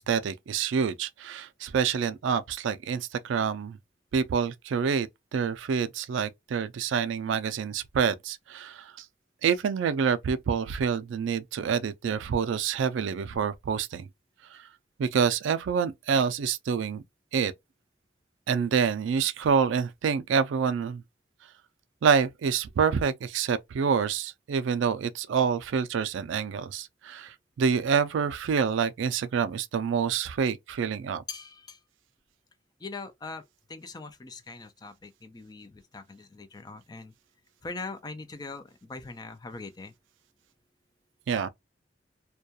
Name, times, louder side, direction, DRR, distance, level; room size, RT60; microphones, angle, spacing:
voice 1, 0.0-3.8 4.1-5.1 5.3-8.9 9.4-14.1 14.5-14.6 15.0-17.0 17.3-17.5 18.5-21.0 22.0-31.2 41.3-41.5, right 6 dB, 75° right, 0.3 m, -27 dB
voice 2, 31.3-31.8 32.8-37.1 37.6-39.9, left 3 dB, 20° left, 0.3 m, -41 dB
2.3 x 2.2 x 2.6 m
head